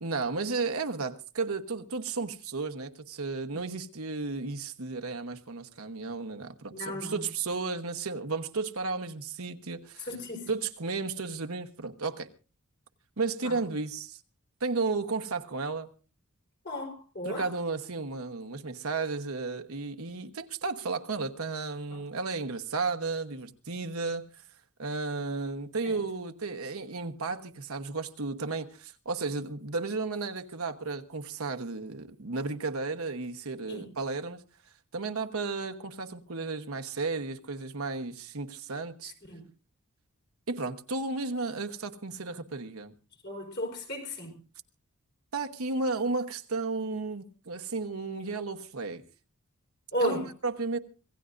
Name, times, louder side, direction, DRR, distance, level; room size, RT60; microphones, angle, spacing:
voice 1, 0.0-10.1 10.5-12.3 13.2-14.2 14.6-15.9 17.2-24.2 24.8-34.4 34.9-39.1 40.5-42.9 45.3-49.0 50.0-50.8, right 3 dB, 65° right, 1.1 m, -33 dB
voice 2, 6.7-7.2 10.1-10.5 13.4-13.6 16.6-17.5 21.9-22.0 25.8-26.0 33.7-33.9 39.3-39.4 43.2-44.4 49.9-50.3, equal, 50° left, 4.3 m, -34 dB
26.0 x 16.5 x 2.6 m
head